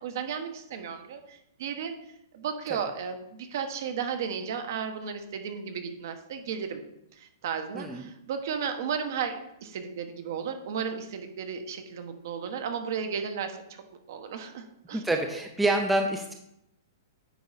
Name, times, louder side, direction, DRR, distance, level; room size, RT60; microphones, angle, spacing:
voice 1, 0.0-1.9 2.3-6.8 7.2-13.6 14.1-15.0, right 7 dB, 55° right, 7 dB, 1.1 m, -34 dB
voice 2, 7.7-8.1 14.9-16.3, right 2 dB, 5° right, 3 dB, 0.5 m, -27 dB
9.3 x 4.7 x 4.1 m, 0.80 s
hypercardioid pair, 165°, 2 cm